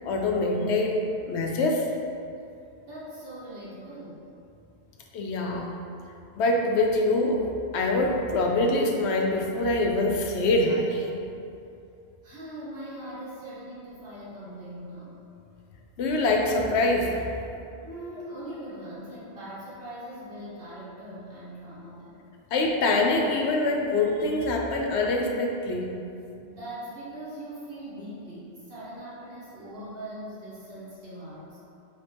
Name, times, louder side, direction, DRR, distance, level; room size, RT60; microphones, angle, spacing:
voice 1, 0.0-1.0 1.3-1.9 5.1-5.7 6.4-7.4 7.7-11.1 16.0-17.4 22.5-25.9, left 2 dB, 85° left, 1 dB, 0.9 m, -24 dB
voice 2, 2.8-4.3 12.2-15.2 17.8-22.3 26.4-31.6, right 1 dB, 60° right, -10 dB, 1.6 m, -41 dB
4.2 x 3.3 x 3.4 m, 2.6 s
omnidirectional pair, 1.1 m